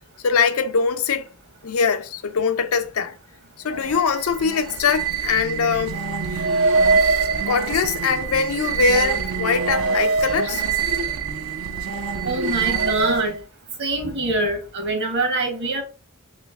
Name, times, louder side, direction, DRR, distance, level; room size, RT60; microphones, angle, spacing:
voice 1, 0.2-1.3 1.6-3.1 3.6-6.0 6.3-6.5 7.5-10.6, left 5 dB, 90° left, 0.5 m, -22 dB
sound 1, 3.7-13.4, right 4 dB, 70° right, 0.5 m, -24 dB
voice 2, 12.2-13.3 13.8-15.8, right 2 dB, 55° right, 1.2 m, -24 dB
3.1 x 3.0 x 3.5 m
head